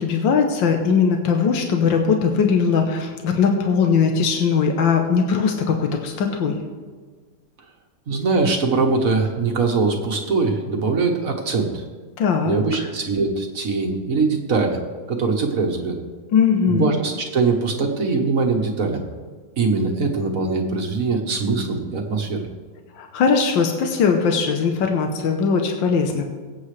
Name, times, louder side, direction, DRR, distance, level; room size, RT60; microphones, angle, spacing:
voice 1, 0.0-6.7 12.2-12.6 16.3-17.0 23.0-26.2, left 5 dB, 85° left, 3 dB, 1.7 m, -20 dB
voice 2, 8.1-11.9 12.4-14.8 15.1-16.0 16.7-19.0 19.6-22.4, right 4 dB, 50° right, 2 dB, 1.5 m, -22 dB
22.5 x 8.5 x 3.3 m, 1.4 s
omnidirectional pair, 2.0 m